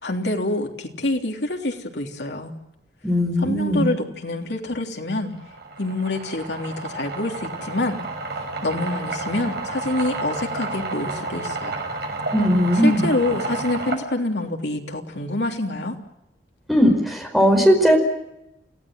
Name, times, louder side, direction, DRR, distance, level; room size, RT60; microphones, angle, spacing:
voice 1, 0.0-2.5 3.4-5.3 5.8-8.0 8.6-11.7 12.7-15.9, left 2 dB, 70° left, 2 dB, 3.4 m, -26 dB
voice 2, 3.0-3.9 12.3-13.0 16.7-18.0, equal, ahead, 3 dB, 4.9 m, -18 dB
sound 1, 5.2-14.0, right 3 dB, 65° right, 7.0 m, -31 dB
29.0 x 17.0 x 7.7 m, 0.86 s
head